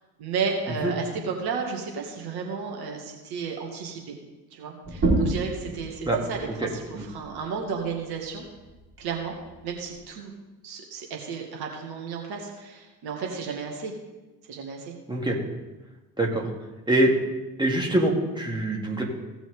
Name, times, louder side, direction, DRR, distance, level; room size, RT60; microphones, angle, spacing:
voice 1, 0.2-4.2 4.5-8.4 9.0-9.3 9.6-10.3 10.6-13.9 14.5-14.9, right 5 dB, 50° right, 1 dB, 2.1 m, -33 dB
sound 1, 4.8-10.0, right 2 dB, 30° right, 4.1 m, -31 dB
voice 2, 17.6-19.0, right 1 dB, 10° right, -1 dB, 2.5 m, -23 dB
16.5 x 6.2 x 3.6 m, 1.1 s
figure-of-eight pair, 60°, 48 cm